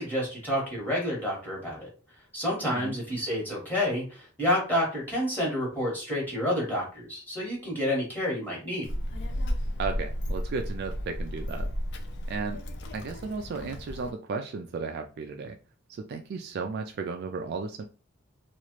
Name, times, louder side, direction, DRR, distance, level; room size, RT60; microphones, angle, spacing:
voice 1, 0.0-1.9 2.3-8.8, left 1 dB, 10° left, -4 dB, 1.4 m, -29 dB
Child speech kid speaking, 8.8-14.1, equal, 55° left, 0.4 m, -33 dB
voice 2, 9.8-11.7 12.3-12.6 12.9-15.6 15.9-17.9, right 4 dB, 50° right, 5 dB, 0.3 m, -34 dB
2.9 x 2.4 x 3.0 m, 0.35 s
head